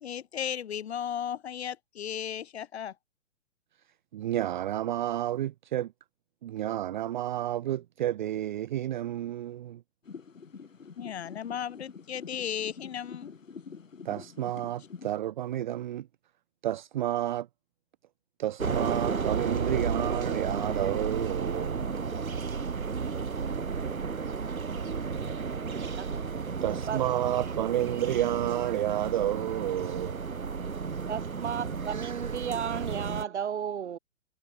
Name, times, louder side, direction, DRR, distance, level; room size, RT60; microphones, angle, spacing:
voice 1, 0.0-2.9 11.0-13.3, left 9 dB, 50° left, 1.1 m, -35 dB
voice 2, 4.1-5.9 6.4-9.8 14.0-16.1 16.6-17.5 18.4-21.8 26.6-30.2, right 12 dB, 35° right, 0.8 m, -30 dB
sound 1, 10.1-15.1, left 5 dB, 65° left, 7.3 m, -46 dB
sound 2, 18.6-33.2, right 5 dB, 85° right, 1.1 m, -33 dB
voice 3, 25.7-26.1 26.9-27.5 27.8-28.2 28.8-29.0 31.1-34.0, right 8 dB, 55° right, 2.1 m, -35 dB
figure-of-eight pair, 125°, 41 cm